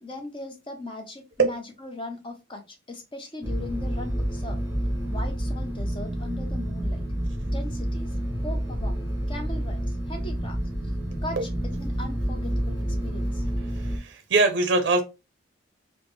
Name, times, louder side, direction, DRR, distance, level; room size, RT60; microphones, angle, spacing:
voice 1, 0.0-4.6 5.1-7.0 7.5-11.0 11.2-13.5, left 2 dB, 25° left, 0.6 m, -39 dB
sound 1, 3.4-14.0, equal, 10° right, 0.9 m, -29 dB
voice 2, 13.7-15.0, right 3 dB, 55° right, 0.5 m, -22 dB
3.4 x 2.0 x 3.2 m
head